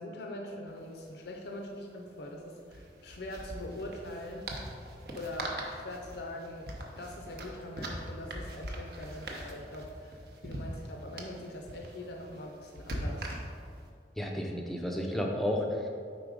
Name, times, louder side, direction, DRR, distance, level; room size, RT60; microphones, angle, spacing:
voice 1, 0.0-4.5 5.1-6.7 7.0-13.3, left 1 dB, 70° left, 1 dB, 0.5 m, -42 dB
sound 1, 0.7-0.8 1.0-1.1 2.6-13.8, right 1 dB, 60° right, 0.7 m, -41 dB
voice 2, 14.2-15.9, left 1 dB, ahead, 0 dB, 0.4 m, -32 dB
4.8 x 3.9 x 5.0 m, 2.4 s
head